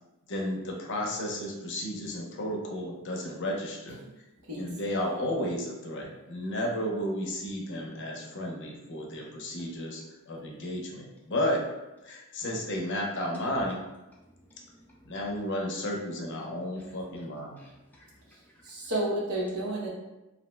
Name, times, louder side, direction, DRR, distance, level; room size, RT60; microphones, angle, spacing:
voice 1, 0.3-4.0 4.6-11.6 12.0-13.8 15.0-17.6, left 1 dB, 55° left, 0 dB, 0.5 m, -33 dB
voice 2, 14.1-15.4 16.8-17.0 17.6-18.9, equal, 5° left, -5 dB, 0.5 m, -59 dB
voice 3, 18.6-19.9, right 1 dB, 75° right, -4 dB, 0.8 m, -31 dB
2.6 x 2.0 x 3.1 m, 1.0 s
head